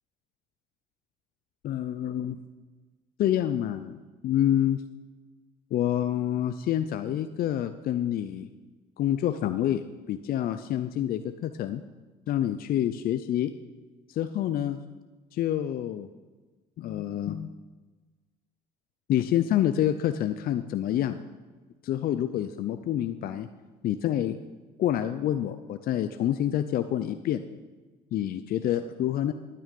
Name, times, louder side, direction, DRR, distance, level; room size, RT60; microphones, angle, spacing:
voice 1, 1.6-2.4 3.2-4.8 5.7-8.5 9.0-9.8 10.1-11.8 12.3-13.5 14.1-14.8 15.3-16.1 16.8-17.5 19.1-21.2 21.8-23.5 23.8-24.4 24.8-27.4 28.1-29.3, left 11 dB, 55° left, 10 dB, 0.6 m, -27 dB
12.0 x 9.5 x 5.3 m, 1.3 s
supercardioid pair, 75°, 18 cm